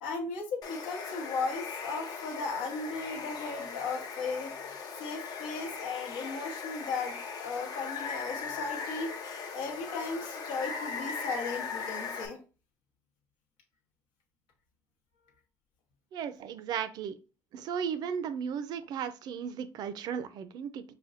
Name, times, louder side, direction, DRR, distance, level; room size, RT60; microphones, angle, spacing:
voice 1, 0.0-4.5 5.0-9.1 9.5-12.4, left 4 dB, 90° left, 1 dB, 1.0 m, -36 dB
Water, 0.6-12.3, left 5 dB, 55° left, 0.6 m, -39 dB
voice 2, 16.1-17.2 17.5-20.8, right 7 dB, 60° right, 12 dB, 0.4 m, -35 dB
4.9 x 2.2 x 2.5 m, 0.34 s
cardioid pair, 105°, 8 cm